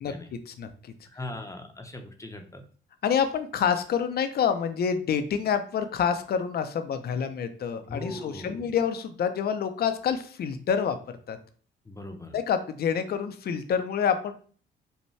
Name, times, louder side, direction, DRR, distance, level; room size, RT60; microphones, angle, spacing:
voice 1, 0.5-0.9 3.0-11.0 11.3-11.4 12.3-14.3, left 7 dB, 50° left, 9 dB, 0.5 m, -27 dB
voice 2, 1.1-2.6 7.8-8.7 11.9-12.3, left 2 dB, 15° left, 5 dB, 0.7 m, -39 dB
5.4 x 2.2 x 3.2 m, 0.44 s
cardioid pair, 90°, 20 cm